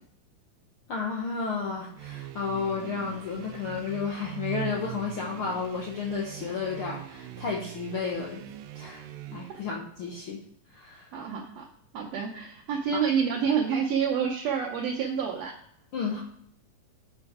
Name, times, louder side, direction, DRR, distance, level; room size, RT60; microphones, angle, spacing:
voice 1, 0.9-8.4 8.7-9.1 9.3-10.4 10.7-11.1 12.9-13.0 15.9-16.2, left 5 dB, 85° left, -1 dB, 1.2 m, -32 dB
sound 1, 2.0-9.8, right 14 dB, 90° right, 2.4 m, -41 dB
voice 2, 11.1-11.6 11.9-15.5, right 7 dB, 70° right, -1 dB, 1.7 m, -28 dB
7.6 x 5.7 x 4.9 m, 0.68 s
omnidirectional pair, 3.9 m